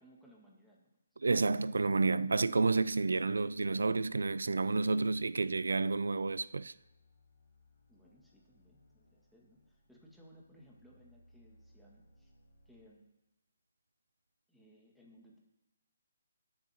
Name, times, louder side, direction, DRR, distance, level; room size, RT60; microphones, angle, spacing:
voice 1, 0.0-1.2 7.9-12.3 12.7-13.1 14.5-15.4, equal, ahead, 1.9 m, -62 dB
voice 2, 1.2-6.7, right 3 dB, 85° right, 0.4 m, -30 dB
sound 1, 3.4-12.9, left 1 dB, 75° left, 2.2 m, -66 dB
17.5 x 7.3 x 2.9 m
hypercardioid pair, 155°, 0 cm